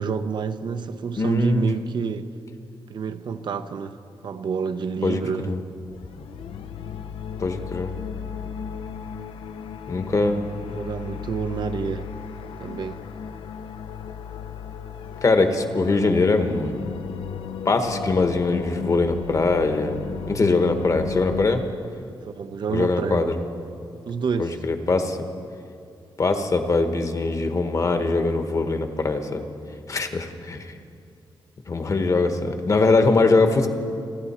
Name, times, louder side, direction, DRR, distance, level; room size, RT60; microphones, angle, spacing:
voice 1, 0.0-2.3 2.9-4.0 4.2-5.5 10.6-12.1 12.6-13.0 22.2-23.2 24.1-24.5, right 6 dB, 55° right, 0.6 m, -28 dB
voice 2, 1.2-1.7 5.0-5.6 7.4-7.9 9.9-10.4 15.2-16.8 17.6-21.6 22.7-23.4 24.4-25.2 26.2-29.5 29.9-30.7 31.7-33.7, left 3 dB, 35° left, 1.1 m, -22 dB
sound 1, 5.9-21.5, left 7 dB, 80° left, 0.5 m, -35 dB
28.0 x 11.0 x 4.3 m
wide cardioid pair, 135°, 9 cm